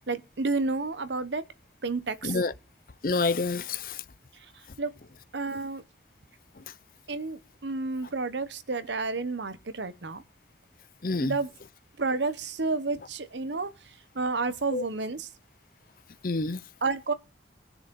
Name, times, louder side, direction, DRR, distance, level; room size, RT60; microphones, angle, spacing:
voice 1, 0.1-1.4 1.8-2.4 4.8-4.9 5.3-5.8 7.1-10.2 11.2-11.5 12.0-13.7 14.1-15.3 16.8-17.1, right 3 dB, 80° right, 1.0 m, -30 dB
voice 2, 3.0-4.0 11.0-11.3 14.7-14.8 16.2-16.6, left 3 dB, 50° left, 0.6 m, -27 dB
18.5 x 6.9 x 5.4 m
head